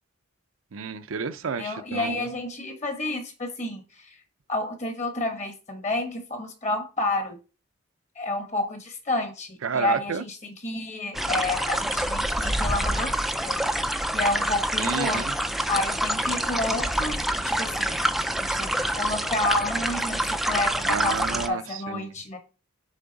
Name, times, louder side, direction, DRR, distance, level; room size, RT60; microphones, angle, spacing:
voice 1, 0.7-2.3 9.6-10.3 13.0-13.1 14.8-15.3 20.8-22.1, right 5 dB, 80° right, 0.5 m, -31 dB
voice 2, 1.6-4.2 4.5-7.4 8.2-13.6 14.1-15.3 15.7-18.0 18.4-22.4, left 2 dB, 35° left, 1.3 m, -30 dB
sound 1, 11.1-21.5, right 1 dB, ahead, 0.3 m, -26 dB
7.3 x 3.4 x 4.0 m
head